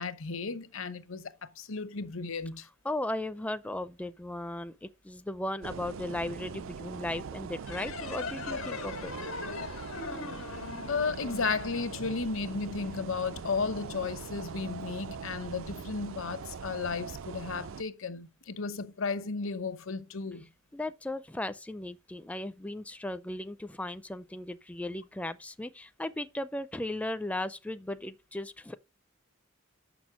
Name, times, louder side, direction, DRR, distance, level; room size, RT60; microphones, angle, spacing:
voice 1, 0.0-2.7 10.9-20.5, left 4 dB, 70° left, 0.9 m, -34 dB
voice 2, 2.8-9.1 20.7-28.7, left 1 dB, 5° left, 0.4 m, -36 dB
sound 1, 5.6-17.8, right 6 dB, 75° right, 0.5 m, -42 dB
sound 2, 7.6-12.9, left 4 dB, 90° left, 1.6 m, -40 dB
6.6 x 6.2 x 5.9 m
head